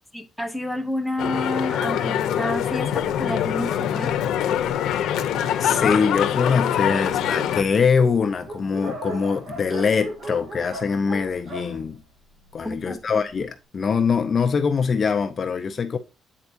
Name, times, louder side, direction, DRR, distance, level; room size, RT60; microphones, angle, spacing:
voice 1, 0.1-4.1 12.6-13.0, left 1 dB, ahead, 0.8 m, -29 dB
sound 1, 1.2-7.6, left 10 dB, 85° left, 0.7 m, -24 dB
Dog, 2.1-5.0 5.7-5.8 6.1-6.2 6.4-12.8, right 2 dB, 70° right, 1.8 m, -38 dB
voice 2, 5.5-12.0 12.5-16.0, left 5 dB, 35° left, 0.6 m, -23 dB
8.5 x 4.5 x 2.6 m
cardioid pair, 155°, 0 cm